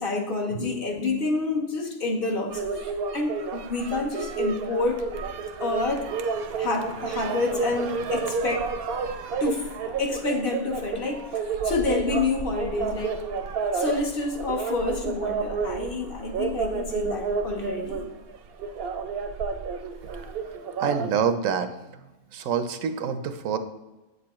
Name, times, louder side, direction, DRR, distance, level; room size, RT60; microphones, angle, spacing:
voice 1, 0.0-2.6 3.1-5.1 5.6-6.1 6.6-8.7 9.4-11.3 11.6-13.2 13.7-18.0, left 3 dB, 45° left, 2 dB, 1.0 m, -28 dB
sound 1, 2.5-21.1, right 5 dB, 60° right, 0.8 m, -31 dB
voice 2, 20.8-21.7 22.3-23.6, right 7 dB, 80° right, 9 dB, 1.0 m, -26 dB
8.0 x 6.9 x 3.0 m, 1.0 s
omnidirectional pair, 1.3 m